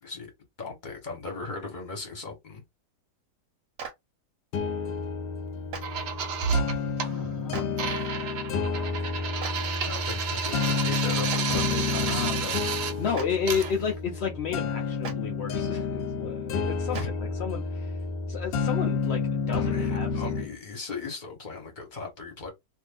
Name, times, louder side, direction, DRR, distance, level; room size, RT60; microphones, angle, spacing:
voice 1, 0.6-2.6 9.8-12.7 16.9-17.1 19.5-22.5, left 4 dB, 30° left, 1.2 m, -38 dB
Clapping, 3.8-3.9 5.7-5.8 7.5-7.6 9.4-9.5 11.3-11.4 13.1-13.2 15.0-15.1 16.9-17.0, right 6 dB, 55° right, 1.1 m, -35 dB
sound 1, 4.5-20.5, left 4 dB, 80° left, 1.2 m, -30 dB
sound 2, 5.8-7.1 7.8-12.9 13.5-13.7, right 7 dB, 85° right, 1.3 m, -31 dB
voice 2, 7.0-7.7 12.0-12.6 13.0-18.0 18.3-20.3, left 6 dB, 65° left, 0.6 m, -32 dB
2.6 x 2.6 x 3.5 m
omnidirectional pair, 1.8 m